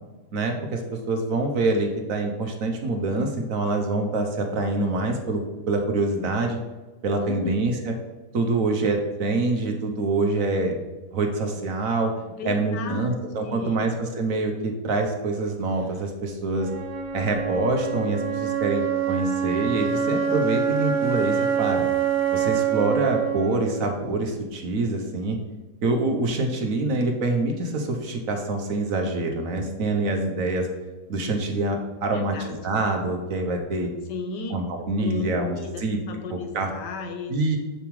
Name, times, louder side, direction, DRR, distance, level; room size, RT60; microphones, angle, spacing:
voice 1, 0.3-6.6 7.0-7.9 8.3-10.7 11.1-12.1 12.4-16.7 17.1-21.8 22.3-25.4 25.8-30.7 31.1-33.9 34.5-36.0 36.3-36.7 37.3-37.6, right 2 dB, 60° right, 3 dB, 1.2 m, -25 dB
voice 2, 7.2-7.6 12.3-13.9 32.1-32.9 34.1-34.5 35.0-37.3, left 5 dB, 85° left, 5 dB, 1.5 m, -35 dB
Wind instrument woodwind instrument, 16.6-24.6, right 8 dB, 85° right, 1.6 m, -26 dB
7.0 x 7.0 x 3.1 m, 1.2 s
omnidirectional pair, 1.8 m